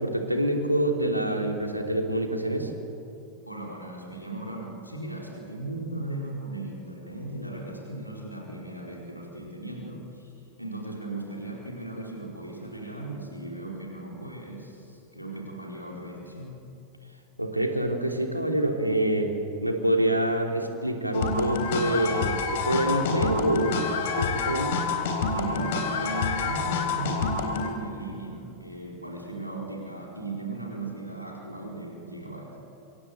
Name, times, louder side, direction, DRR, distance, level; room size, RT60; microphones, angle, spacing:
voice 1, 0.0-2.7 17.4-19.3 19.6-23.8 24.2-24.8, right 1 dB, 90° right, 3 dB, 3.0 m, -26 dB
voice 2, 3.5-10.3 10.6-16.6 25.3-32.6, right 2 dB, 90° left, -1 dB, 4.3 m, -37 dB
sound 1, 21.1-27.7, left 4 dB, 55° left, 3.8 m, -28 dB
26.5 x 23.5 x 8.0 m, 2.7 s
figure-of-eight pair, 90°, 0 cm